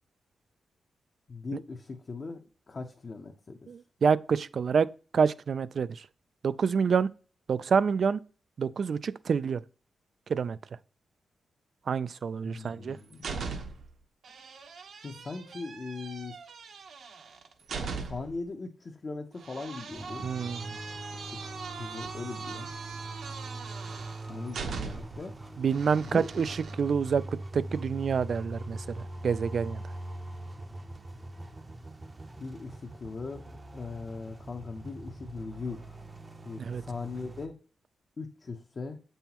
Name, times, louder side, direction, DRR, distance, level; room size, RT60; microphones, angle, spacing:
voice 1, 1.3-3.7 12.4-13.3 15.0-16.3 18.1-20.3 21.2-21.4 21.8-22.7 24.3-25.3 26.0-26.4 32.4-35.9 36.4-37.6 38.2-39.0, left 4 dB, 30° left, 0.7 m, -40 dB
voice 2, 3.7-4.9 5.1-5.9 6.4-7.1 7.5-8.2 8.6-9.6 10.3-10.6 11.9-13.0 20.2-20.8 25.6-27.2 27.5-29.8 36.7-36.8, right 6 dB, 45° right, 0.3 m, -27 dB
sound 1, 12.6-13.9 14.2-18.4 19.4-25.2 25.7-26.7, right 5 dB, 65° right, 1.0 m, -40 dB
sound 2, 19.9-37.5, right 1 dB, 20° right, 0.7 m, -42 dB
8.1 x 5.5 x 2.9 m
wide cardioid pair, 170°, 0 cm